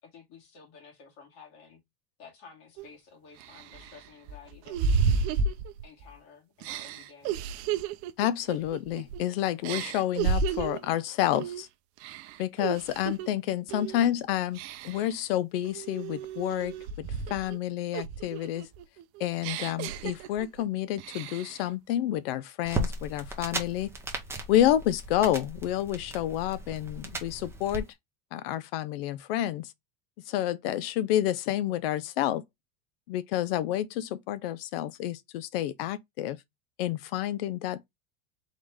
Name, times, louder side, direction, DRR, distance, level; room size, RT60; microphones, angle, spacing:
voice 1, 0.0-1.8 2.2-5.3 5.8-7.4 13.9-14.2, left 5 dB, 50° left, 2.4 m, -52 dB
sound 1, 2.8-2.9 3.4-6.1 6.6-9.3 9.6-10.9 11.3-11.6 12.0-13.3 13.7-14.0 14.5-15.1 15.6-17.6 17.9-20.6 21.0-21.6, right 5 dB, 50° right, 0.6 m, -32 dB
voice 2, 8.2-11.7 12.4-18.7 19.2-23.9 24.5-27.9 28.3-29.7 30.3-32.4 33.1-36.4 36.8-37.8, left 12 dB, 75° left, 0.6 m, -29 dB
sound 2, 22.6-27.8, right 1 dB, 10° right, 1.0 m, -36 dB
4.1 x 3.1 x 3.4 m
supercardioid pair, 135°, 30 cm